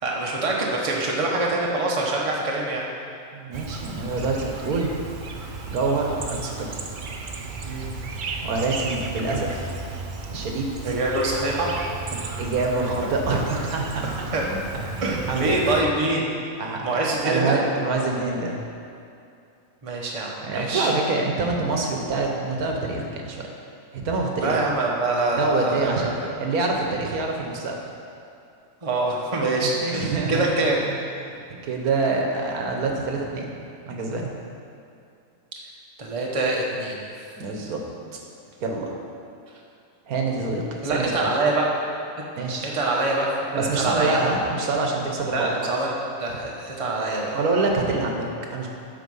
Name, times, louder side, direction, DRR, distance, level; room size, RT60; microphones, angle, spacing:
voice 1, 0.0-2.9 7.6-7.9 10.8-11.8 12.2-12.3 14.0-14.4 15.0-16.3 16.8-17.6 19.8-20.9 24.4-26.3 28.8-30.8 31.3-31.4 36.0-37.0 40.8-41.9 42.7-44.2 45.3-47.4, right 2 dB, 25° right, -3 dB, 1.0 m, -25 dB
voice 2, 3.3-4.9 5.7-6.8 8.4-9.7 10.3-10.9 12.4-14.6 15.0-15.7 16.6-18.6 20.4-23.5 23.9-24.7 25.4-26.1 26.4-27.8 29.6-30.4 30.9-31.0 31.6-33.5 33.9-34.3 37.4-37.8 38.6-39.0 40.1-41.3 42.4-42.7 43.5-45.5 47.3-48.7, right 3 dB, 85° right, 1 dB, 1.5 m, -26 dB
Chirp tweet, 3.5-15.8, right 3 dB, 50° right, 0.6 m, -34 dB
8.0 x 5.7 x 5.4 m, 2.6 s
omnidirectional pair, 1.5 m